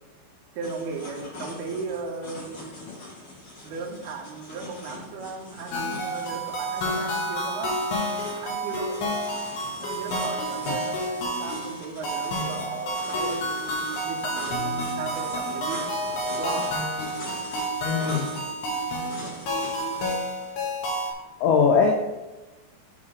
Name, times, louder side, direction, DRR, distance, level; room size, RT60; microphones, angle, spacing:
sound 1, 0.6-20.2, left 2 dB, 40° left, 2.3 m, -42 dB
voice 1, 0.6-2.9 3.6-7.7 8.4-9.0 9.8-15.8 16.4-16.7, right 4 dB, 70° right, 0 dB, 2.7 m, -36 dB
sound 2, 5.7-21.1, equal, 65° left, 3.5 m, -30 dB
voice 2, 17.8-18.3 21.4-21.9, left 5 dB, 85° left, 2 dB, 2.3 m, -21 dB
14.0 x 4.9 x 3.2 m, 1.1 s
omnidirectional pair, 5.4 m